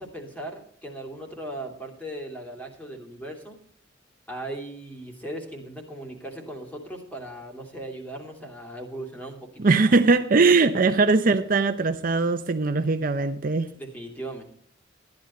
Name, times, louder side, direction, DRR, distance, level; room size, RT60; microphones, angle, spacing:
voice 1, 0.0-3.6 4.3-9.9 13.7-14.4, right 1 dB, 10° left, 2.6 m, -38 dB
voice 2, 9.6-13.7, right 3 dB, 45° right, 0.6 m, -20 dB
14.0 x 10.5 x 4.3 m
head